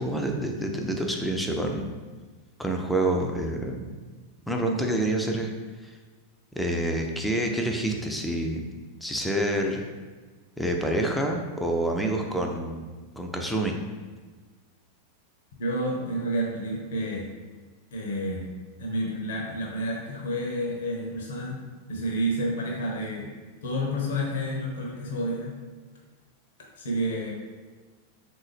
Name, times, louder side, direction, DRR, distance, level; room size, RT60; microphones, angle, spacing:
voice 1, 0.0-1.9 2.6-3.9 4.5-5.5 6.6-8.6 9.0-9.8 10.6-12.8 13.2-13.7, right 1 dB, 5° left, 2 dB, 0.4 m, -27 dB
voice 2, 15.6-17.3 17.9-18.4 18.8-21.6 21.9-23.3 23.6-25.5 26.8-27.3, equal, 60° left, 0 dB, 0.7 m, -29 dB
3.7 x 2.7 x 3.3 m, 1.4 s
figure-of-eight pair, 90°, 0 cm